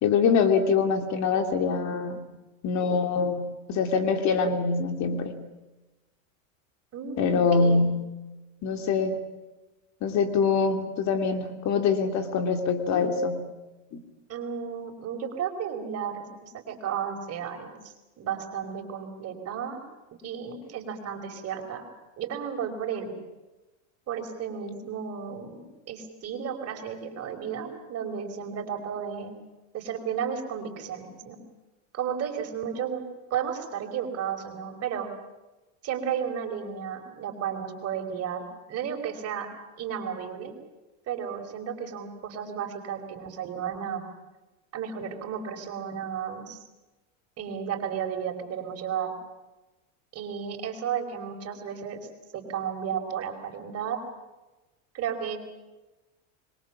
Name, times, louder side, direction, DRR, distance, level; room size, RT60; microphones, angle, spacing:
voice 1, 0.0-2.3 2.6-5.4 7.2-8.1 8.6-9.2 10.0-13.5 13.9-14.0, left 5 dB, 45° left, 7 dB, 2.9 m, -24 dB
voice 2, 6.9-7.8 14.3-19.8 20.1-21.8 22.2-23.1 24.1-29.4 29.7-31.4 31.9-33.0 33.3-35.1 35.8-39.5 39.8-40.5 41.1-44.0 44.7-46.6 47.4-49.1 50.1-52.0 52.3-54.0 54.9-55.4, right 8 dB, 40° right, 5 dB, 5.0 m, -33 dB
25.5 x 23.0 x 7.3 m, 1.1 s
supercardioid pair, 125°, 39 cm